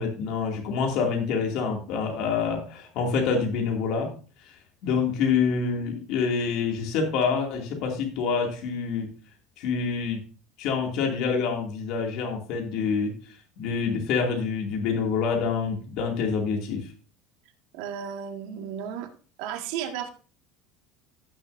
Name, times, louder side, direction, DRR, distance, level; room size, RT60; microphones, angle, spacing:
voice 1, 0.0-4.1 4.8-9.1 9.6-10.2 10.6-13.1 13.6-16.8, left 5 dB, 65° left, 1 dB, 2.3 m, -26 dB
voice 2, 17.7-19.1 19.4-20.1, right 8 dB, 80° right, 5 dB, 1.7 m, -34 dB
16.5 x 6.5 x 2.6 m, 0.39 s
cardioid pair, 130°, 0 cm